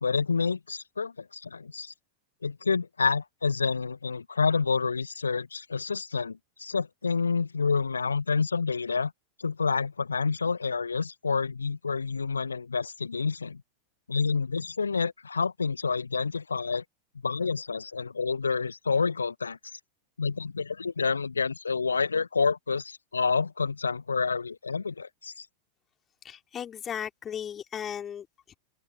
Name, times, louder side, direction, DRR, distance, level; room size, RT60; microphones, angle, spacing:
voice 1, 0.0-1.9 2.4-9.1 9.4-13.6 14.1-16.8 17.2-19.8 20.2-25.5, left 5 dB, 75° left, 0.9 m, -28 dB
voice 2, 26.2-28.5, left 9 dB, 25° left, 3.5 m, -36 dB
figure-of-eight pair, 90°, 0 cm